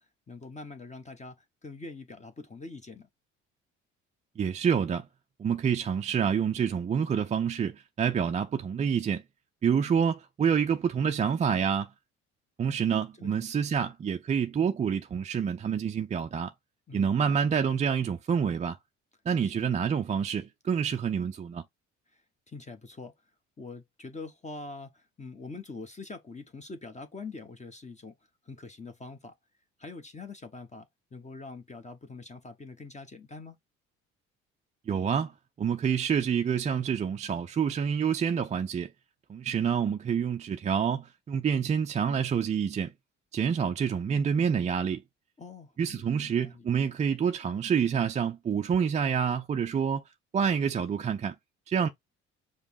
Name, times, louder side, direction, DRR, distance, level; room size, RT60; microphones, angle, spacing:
voice 1, 0.0-3.1 13.2-13.3 16.9-17.2 19.4-19.7 22.1-22.2 22.5-23.1 23.6-28.1 28.4-29.3 29.8-33.6 45.4-46.6, left 3 dB, 20° left, 0.8 m, -44 dB
voice 2, 4.4-5.1 5.4-9.2 9.6-11.9 12.6-16.5 16.9-18.8 19.3-21.6 34.9-35.3 35.6-38.9 39.3-42.9 43.3-45.0 45.8-50.0 50.3-51.4 51.7-51.9, right 7 dB, 20° right, 0.4 m, -27 dB
5.1 x 2.0 x 4.5 m
hypercardioid pair, 55°, 35 cm